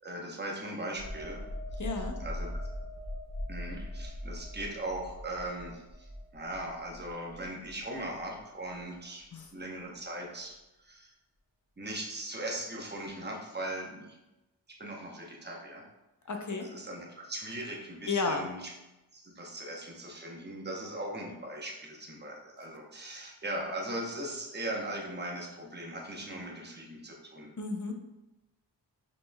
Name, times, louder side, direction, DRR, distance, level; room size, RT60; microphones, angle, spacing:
voice 1, 0.0-1.4 1.7-2.5 3.5-11.1 11.8-14.2 14.8-15.8 16.6-18.7 19.1-27.5, right 1 dB, 25° right, -1 dB, 0.9 m, -39 dB
sound 1, 0.9-8.4 8.7-8.9, left 1 dB, 70° left, 1.2 m, -41 dB
voice 2, 1.8-2.2 9.3-9.5 16.3-16.7 18.1-18.5 27.6-27.9, left 3 dB, 45° left, 4 dB, 0.6 m, -32 dB
5.1 x 3.1 x 2.2 m, 0.99 s
wide cardioid pair, 50°, 44 cm